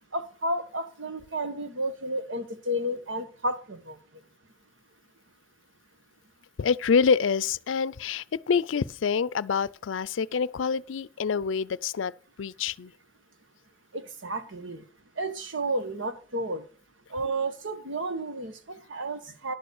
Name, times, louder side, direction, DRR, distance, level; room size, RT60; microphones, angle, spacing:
voice 1, 0.1-4.0 13.9-14.8 15.2-16.6 17.1-19.5, right 1 dB, 85° right, 1.5 m, -32 dB
voice 2, 6.6-12.1 12.4-12.9, left 6 dB, 85° left, 0.4 m, -26 dB
11.5 x 6.9 x 6.4 m
head